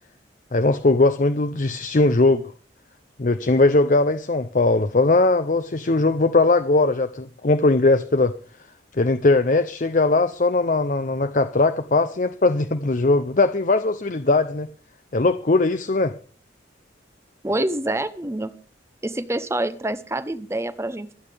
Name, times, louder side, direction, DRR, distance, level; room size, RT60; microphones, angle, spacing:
voice 1, 0.5-2.4 3.2-8.3 9.0-14.7 15.1-16.1, left 2 dB, 45° left, 10 dB, 0.6 m, -19 dB
voice 2, 17.4-18.5 19.0-21.2, right 1 dB, 15° right, 13 dB, 0.8 m, -26 dB
26.0 x 8.8 x 3.5 m, 0.42 s
head